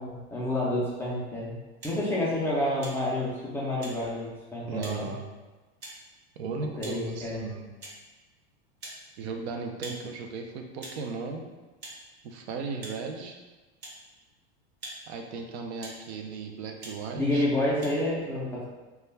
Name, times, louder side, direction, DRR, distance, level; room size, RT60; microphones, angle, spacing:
voice 1, 0.0-1.6 1.8-5.1 6.8-7.4 17.2-18.7, left 1 dB, 10° left, -7 dB, 0.3 m, -29 dB
sound 1, 1.8-2.0 2.8-3.0 3.8-4.0 4.8-5.0 5.8-6.0 6.8-7.0 7.8-8.0 8.8-9.0 9.8-10.0 10.8-11.0 11.8-12.0 12.8-13.0 13.8-14.0 14.8-15.0 15.8-16.0 16.8-17.0 17.8-17.9, right 2 dB, 35° right, 0.7 m, -42 dB
voice 2, 4.7-5.3 6.4-7.7 9.2-11.5 12.2-13.4 15.1-17.5, right 4 dB, 80° right, 3 dB, 0.5 m, -36 dB
2.3 x 2.1 x 3.2 m, 1.2 s
supercardioid pair, 130°, 32 cm